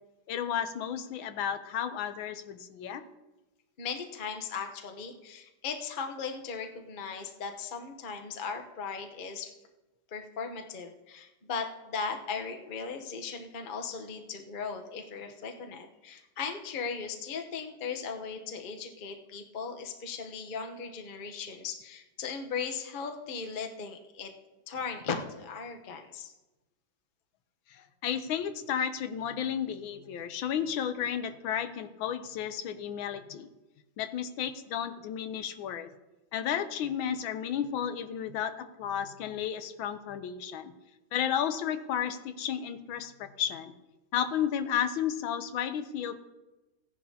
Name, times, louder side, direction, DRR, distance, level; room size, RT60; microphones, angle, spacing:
voice 1, 0.3-3.0 27.7-33.5 34.0-35.9 36.3-40.7 41.1-43.7 44.1-46.2, left 9 dB, 80° left, 10 dB, 1.4 m, -33 dB
voice 2, 3.8-9.5 10.1-24.3 24.7-26.3, left 5 dB, 45° left, 4 dB, 0.6 m, -37 dB
16.5 x 10.5 x 2.8 m, 1.1 s
omnidirectional pair, 2.2 m